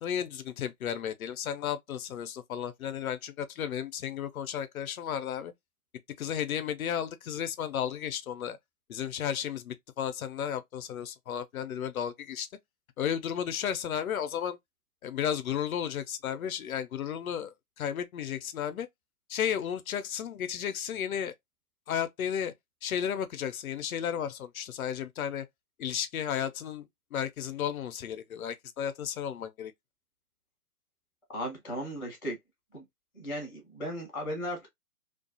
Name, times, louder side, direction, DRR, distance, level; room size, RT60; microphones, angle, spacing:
voice 1, 0.0-5.5 6.2-8.6 8.9-12.5 13.0-14.6 15.0-18.9 19.3-21.3 21.9-22.5 22.8-25.5 25.8-29.7, left 9 dB, 65° left, 0.6 m, -33 dB
voice 2, 31.3-32.4 32.7-32.8 33.1-34.7, equal, ahead, 0.4 m, -36 dB
2.4 x 2.3 x 2.6 m
hypercardioid pair, 140°, 45 cm